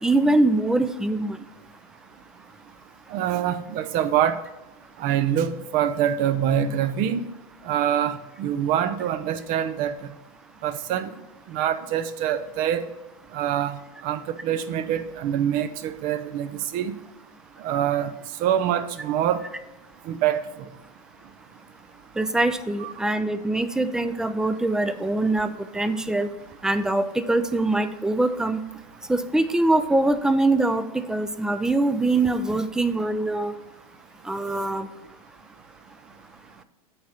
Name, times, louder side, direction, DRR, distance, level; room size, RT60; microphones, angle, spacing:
voice 1, 0.0-1.4 22.2-26.3 26.6-28.6 29.1-33.5 34.3-34.9, right 2 dB, 5° right, 12 dB, 0.4 m, -23 dB
voice 2, 3.1-4.4 5.0-7.2 7.7-9.9 10.6-11.1 11.5-12.9 13.3-13.8 14.0-16.9 17.6-18.1 18.4-19.4 20.1-20.4 22.8-22.9, right 10 dB, 45° right, 12 dB, 0.7 m, -25 dB
8.7 x 4.2 x 6.4 m, 1.0 s
hypercardioid pair, 110°, 20 cm